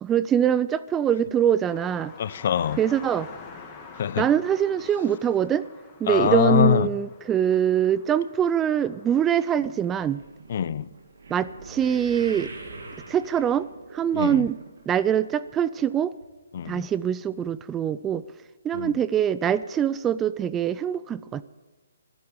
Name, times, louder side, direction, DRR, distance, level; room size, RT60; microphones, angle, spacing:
voice 1, 0.0-2.1 2.8-3.3 4.2-5.6 6.0-10.2 11.3-12.5 13.1-13.7 13.9-14.6 14.9-16.1 16.7-18.2 18.6-21.4, right 9 dB, 15° right, 16 dB, 0.4 m, -23 dB
sound 1, 1.7-9.3, left 5 dB, 15° left, 2.0 m, -47 dB
voice 2, 2.2-2.8 4.0-4.2 6.1-6.9 10.5-10.8 14.1-14.4 16.5-16.8 18.7-18.9, left 9 dB, 50° left, 17 dB, 0.6 m, -23 dB
sound 2, 9.1-15.5 15.8-16.3 16.8-16.9 17.2-17.3, right 3 dB, 65° right, 2.6 m, -44 dB
12.5 x 9.3 x 9.8 m, 1.3 s
figure-of-eight pair, 145°, 0 cm